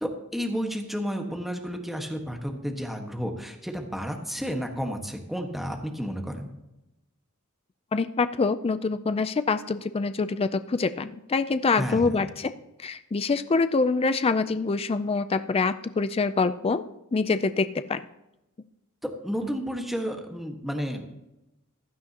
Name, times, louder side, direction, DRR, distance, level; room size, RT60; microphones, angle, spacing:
voice 1, 0.0-6.5 11.8-12.2 19.0-21.2, equal, ahead, 3 dB, 1.4 m, -32 dB
voice 2, 7.9-12.5 12.8-16.8 17.1-18.0, left 4 dB, 25° left, 11 dB, 0.4 m, -25 dB
16.0 x 11.5 x 2.9 m, 0.91 s
head